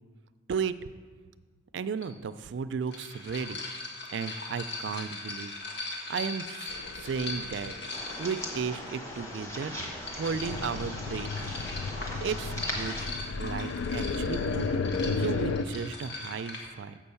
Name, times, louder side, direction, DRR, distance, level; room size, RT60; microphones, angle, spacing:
voice 1, 1.7-3.6 4.1-5.5 6.1-7.7 8.2-9.7 10.2-11.3 12.2-13.0 13.4-14.7 15.2-17.0, right 6 dB, 60° right, 12 dB, 0.3 m, -34 dB
sound 1, 2.0-2.1 2.9-8.7 9.7-16.6, left 2 dB, 60° left, 1.6 m, -40 dB
sound 2, 6.7-15.6, left 4 dB, 85° left, 0.4 m, -34 dB
sound 3, 7.9-13.1, equal, 15° left, 1.2 m, -39 dB
7.3 x 5.4 x 6.9 m, 1.5 s
head